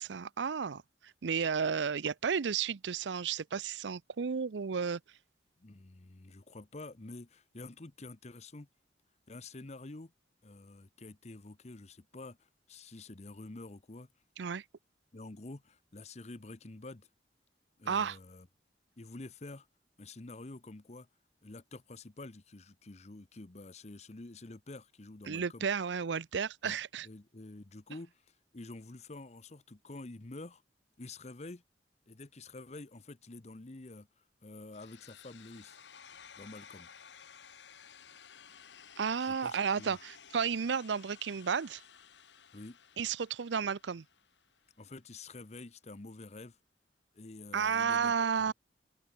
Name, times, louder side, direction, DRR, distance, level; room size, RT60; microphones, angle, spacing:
voice 1, 0.0-5.0 14.4-14.6 17.9-18.2 25.3-27.1 39.0-41.8 43.0-44.0 47.5-48.5, right 6 dB, 85° right, 0.6 m, -32 dB
voice 2, 5.6-8.7 9.3-10.1 10.4-14.1 15.1-17.1 17.8-18.5 19.0-19.7 20.0-21.1 21.4-25.7 26.6-26.8 27.0-30.6 31.0-31.6 32.1-35.8 36.4-36.9 39.2-40.0 42.5-42.8 44.8-46.6 47.1-48.1 48.4-48.5, left 2 dB, 40° left, 0.9 m, -48 dB
sound 1, 34.7-44.7, left 7 dB, 80° left, 1.3 m, -55 dB
open air
head